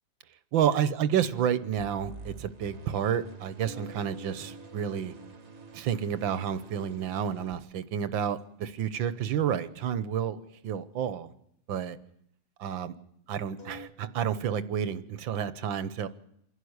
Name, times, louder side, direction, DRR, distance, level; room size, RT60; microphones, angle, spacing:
voice 1, 0.5-5.1 5.7-11.3 11.7-12.0 12.6-12.9 13.3-16.1, right 9 dB, 90° right, 14 dB, 1.8 m, -30 dB
sound 1, 1.8-7.6, right 4 dB, 40° right, 1.7 m, -49 dB
sound 2, 3.6-7.8 8.1-8.6 9.0-9.3 9.8-9.9 13.6-13.9, right 1 dB, 30° left, 3.2 m, -49 dB
27.5 x 11.5 x 9.6 m, 0.73 s
omnidirectional pair, 2.0 m